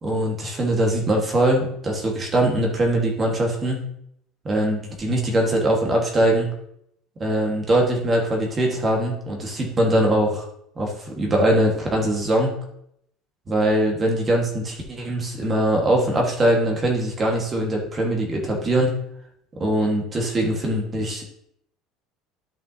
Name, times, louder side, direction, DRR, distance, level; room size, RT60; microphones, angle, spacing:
voice 1, 0.0-3.8 4.4-6.5 7.2-10.4 10.8-12.5 13.5-18.9 19.6-21.3, right 1 dB, 20° right, 0 dB, 1.5 m, -22 dB
12.0 x 5.4 x 2.8 m, 0.74 s
cardioid pair, 170°, 0 cm